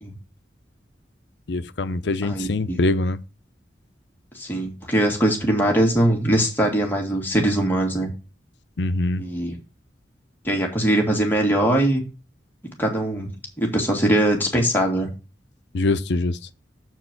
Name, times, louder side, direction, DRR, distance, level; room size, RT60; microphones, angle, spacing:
voice 1, 1.5-3.2 8.8-9.2 15.7-16.4, left 2 dB, 70° left, 0.6 m, -23 dB
voice 2, 2.2-2.8 4.3-8.1 9.2-9.6 10.4-12.0 12.8-13.3 13.6-15.1, right 1 dB, 10° left, 1.9 m, -21 dB
7.6 x 4.5 x 5.8 m
head